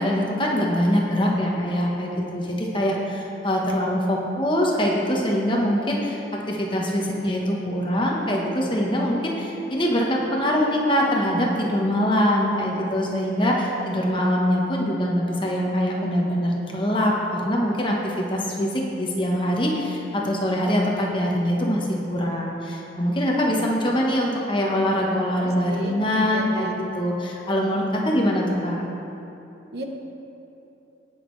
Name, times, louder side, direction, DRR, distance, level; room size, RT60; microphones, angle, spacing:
voice 1, 0.0-26.7 26.9-28.8, equal, 25° left, -2 dB, 1.1 m, -23 dB
voice 2, 23.9-24.6 25.4-26.7 29.7-29.8, equal, 55° right, 2 dB, 0.9 m, -36 dB
18.5 x 6.3 x 3.2 m, 2.9 s
head